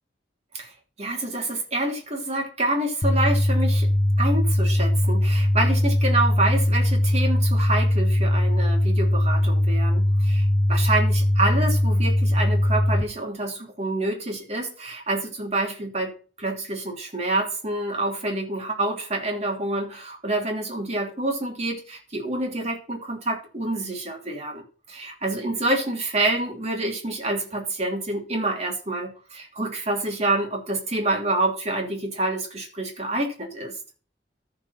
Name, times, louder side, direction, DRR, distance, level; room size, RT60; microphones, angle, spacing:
voice 1, 1.0-3.9 4.2-16.1 16.4-33.8, right 2 dB, 40° right, 1 dB, 3.0 m, -27 dB
sound 1, 3.0-13.0, left 1 dB, 35° left, 1.1 m, -20 dB
14.5 x 4.9 x 4.2 m, 0.37 s
head